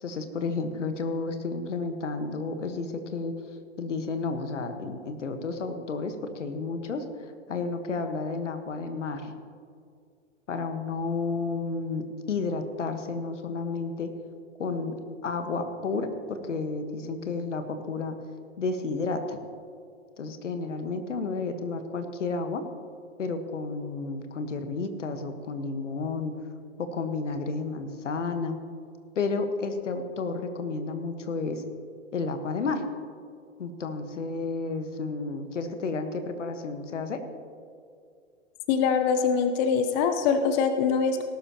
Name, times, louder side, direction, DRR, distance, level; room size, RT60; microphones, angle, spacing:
voice 1, 0.0-3.3 3.8-7.0 7.5-9.3 10.5-14.1 14.6-14.9 15.2-18.1 18.6-19.4 20.2-22.6 23.2-26.3 26.8-28.6 29.1-31.6 32.1-32.8 33.6-37.2, left 4 dB, 80° left, 8 dB, 1.4 m, -31 dB
voice 2, 38.7-41.2, left 6 dB, 40° left, 8 dB, 0.9 m, -23 dB
18.5 x 11.5 x 2.9 m, 2.3 s
hypercardioid pair, 110°, 36 cm